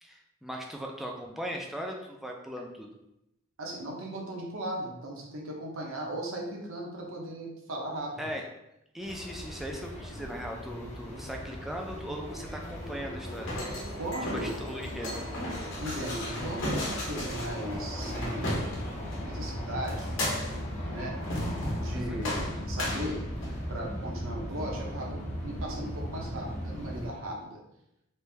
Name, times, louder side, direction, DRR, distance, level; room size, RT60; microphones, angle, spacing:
voice 1, 0.0-2.9 8.2-8.5 8.9-13.5 14.3-15.2 21.9-22.2, equal, ahead, 0 dB, 0.4 m, -39 dB
voice 2, 3.6-8.3 14.0-14.5 15.8-18.6 19.2-20.2 20.9-21.1 21.8-23.2 23.7-27.6, right 1 dB, 70° right, -1 dB, 0.8 m, -37 dB
sound 1, 9.0-27.1, equal, 35° left, 0.7 m, -37 dB
sound 2, 13.2-19.2 19.9-20.7 21.2-21.9 22.2-23.7, left 1 dB, 60° left, 0.9 m, -35 dB
3.2 x 2.6 x 3.3 m, 0.85 s
head